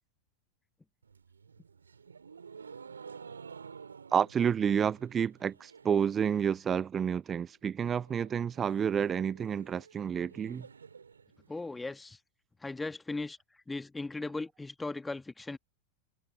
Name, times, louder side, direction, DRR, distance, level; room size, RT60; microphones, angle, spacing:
sound 1, 1.0-6.1 6.3-6.9 7.2-7.3 7.5-7.6 7.9-11.9, right 6 dB, 75° right, 1.9 m, -51 dB
voice 1, 4.1-10.7, right 8 dB, 20° right, 0.5 m, -29 dB
voice 2, 11.5-12.2 12.6-15.6, left 3 dB, 10° left, 1.3 m, -38 dB
figure-of-eight pair, 90°, 0 cm